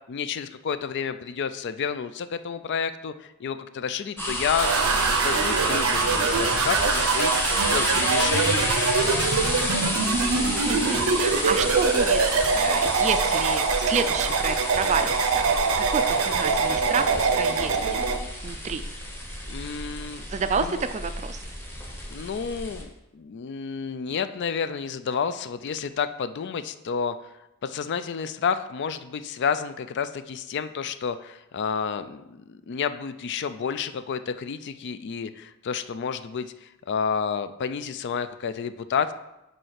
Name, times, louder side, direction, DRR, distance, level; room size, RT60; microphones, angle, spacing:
voice 1, 0.1-4.7 5.0-8.7 9.0-9.3 19.5-20.3 20.6-20.8 22.1-27.2 27.6-39.1, left 6 dB, 50° left, 12 dB, 0.4 m, -30 dB
sound 1, 4.2-22.8, equal, 10° left, 1.1 m, -30 dB
sound 2, 4.6-18.2, right 4 dB, 70° right, 0.6 m, -24 dB
voice 2, 10.7-12.2 12.5-15.5 15.8-17.8 18.4-18.8 20.3-21.4, right 5 dB, 30° right, 10 dB, 0.4 m, -29 dB
5.4 x 4.3 x 5.7 m, 0.92 s
head